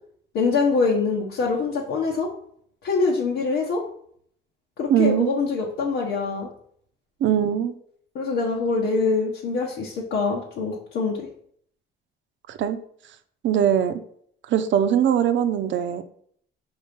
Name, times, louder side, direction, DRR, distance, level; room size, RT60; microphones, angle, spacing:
voice 1, 0.3-2.3 2.8-3.8 4.8-6.5 8.1-11.3, left 4 dB, 80° left, -3 dB, 1.2 m, -24 dB
voice 2, 4.9-5.3 7.2-7.8 12.5-12.8 13.4-14.0 14.5-16.0, right 9 dB, 70° right, 10 dB, 0.7 m, -21 dB
5.5 x 4.4 x 5.1 m, 0.63 s
cardioid pair, 90°, 20 cm